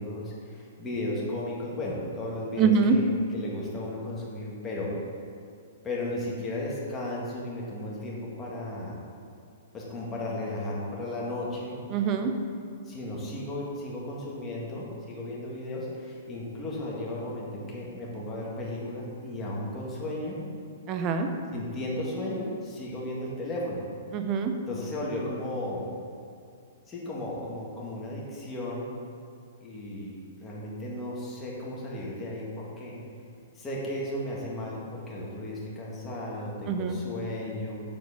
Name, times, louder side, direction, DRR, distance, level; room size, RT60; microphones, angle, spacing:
voice 1, 0.0-3.1 3.3-5.0 5.8-9.0 9.7-11.8 12.8-20.4 21.5-23.8 24.7-25.9 26.9-28.9 29.6-33.0 33.6-37.7, left 1 dB, 15° left, -5 dB, 1.9 m, -35 dB
voice 2, 2.6-3.0 11.9-12.3 20.9-21.3 24.1-24.5 36.7-37.0, right 5 dB, 30° right, 6 dB, 0.7 m, -24 dB
7.4 x 4.6 x 5.8 m, 2.4 s
hypercardioid pair, 140°, 0 cm